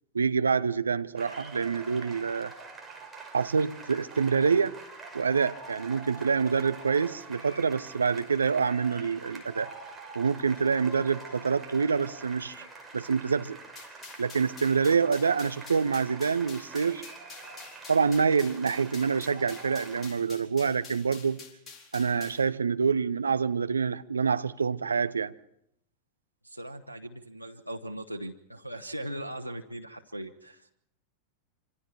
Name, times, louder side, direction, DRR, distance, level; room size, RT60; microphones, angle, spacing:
voice 1, 0.1-2.5 3.3-4.7 5.1-9.7 10.1-12.6 12.9-13.6 14.2-17.0 17.9-21.4 21.9-25.3, right 5 dB, 75° right, 0.8 m, -26 dB
sound 1, 1.2-20.1, right 3 dB, 15° right, 5.9 m, -45 dB
sound 2, 13.8-22.5, left 5 dB, 25° left, 4.4 m, -48 dB
voice 2, 26.4-30.7, right 1 dB, 90° left, 1.0 m, -39 dB
26.5 x 26.0 x 4.6 m
figure-of-eight pair, 90°, 0 cm